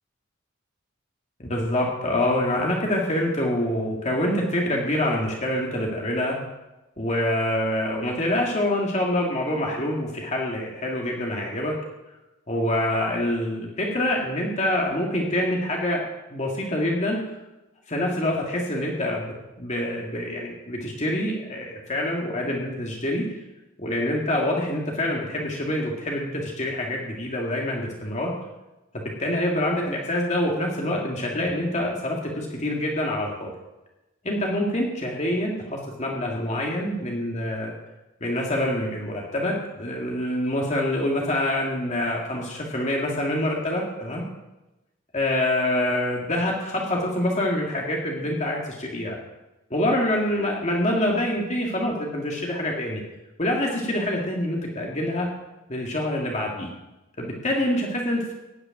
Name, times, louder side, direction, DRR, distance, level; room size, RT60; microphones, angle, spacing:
voice 1, 1.4-6.4 7.0-11.8 12.5-16.0 16.3-17.2 17.9-23.4 23.8-28.3 28.9-33.5 34.2-37.7 38.2-44.2 45.1-49.2 49.7-53.0 53.4-55.3 55.7-56.7 57.2-58.3, left 1 dB, 35° left, -1 dB, 2.2 m, -26 dB
15.5 x 6.8 x 9.1 m, 1.0 s
head